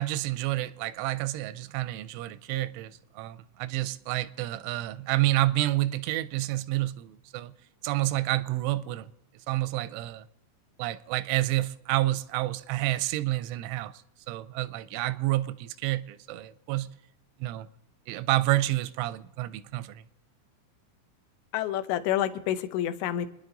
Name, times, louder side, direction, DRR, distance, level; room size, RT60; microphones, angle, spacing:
voice 1, 0.0-7.5 7.8-9.1 9.5-10.3 10.8-16.9 17.4-17.7 18.1-20.0, right 16 dB, 85° right, 3.0 m, -29 dB
voice 2, 21.5-23.3, left 11 dB, 80° left, 3.1 m, -28 dB
28.0 x 10.5 x 3.9 m
omnidirectional pair, 5.4 m